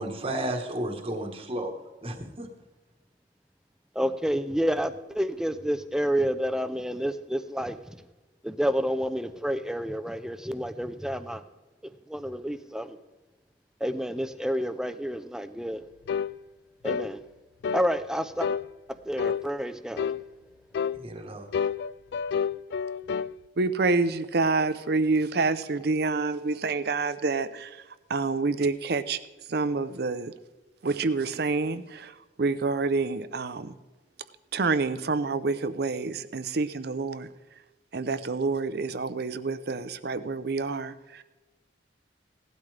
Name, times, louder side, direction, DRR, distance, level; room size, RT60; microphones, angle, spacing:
voice 1, 0.0-1.7 2.0-2.5 20.9-21.5, right 1 dB, 30° right, 4 dB, 1.3 m, -33 dB
voice 2, 3.9-8.0 8.4-11.4 12.1-13.0 13.8-15.8 16.8-17.2 17.7-18.5 19.0-20.1, equal, 5° right, 11 dB, 0.5 m, -29 dB
sound 1, 16.1-16.3 16.8-17.1 17.6-17.9 18.4-18.7 19.2-19.4 20.0-20.2 20.7-21.0 21.5-23.3, left 6 dB, 65° left, 0.3 m, -29 dB
voice 3, 23.6-27.8 28.1-29.2 29.5-30.3 30.8-33.7 34.5-37.3 37.9-41.2, right 3 dB, 60° right, 13 dB, 0.6 m, -27 dB
17.0 x 12.0 x 3.3 m, 1.2 s
head